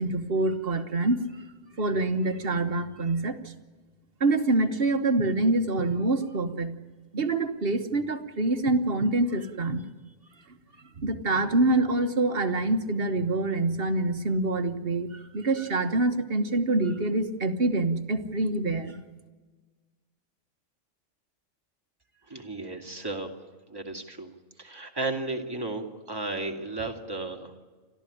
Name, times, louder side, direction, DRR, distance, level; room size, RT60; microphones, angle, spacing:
voice 1, 0.0-1.4 1.8-3.5 4.2-6.7 7.1-9.9 11.0-19.0, right 2 dB, 45° right, 8 dB, 1.4 m, -26 dB
voice 2, 22.3-23.3 23.7-24.3 24.6-27.6, right 2 dB, 15° right, 1 dB, 2.5 m, -34 dB
30.0 x 13.5 x 10.0 m, 1.4 s
omnidirectional pair, 1.4 m